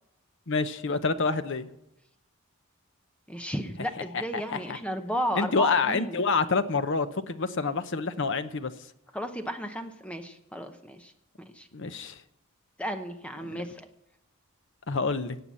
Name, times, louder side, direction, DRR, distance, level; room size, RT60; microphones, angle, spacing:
voice 1, 0.5-1.7 4.1-4.8 5.3-8.7 11.7-12.2 13.4-13.5 14.9-15.4, left 4 dB, 55° left, 11 dB, 0.8 m, -27 dB
voice 2, 3.3-6.2 9.1-11.1 11.5-11.7 12.8-13.9, equal, 5° left, 6 dB, 0.8 m, -34 dB
17.5 x 5.9 x 8.3 m, 0.83 s
head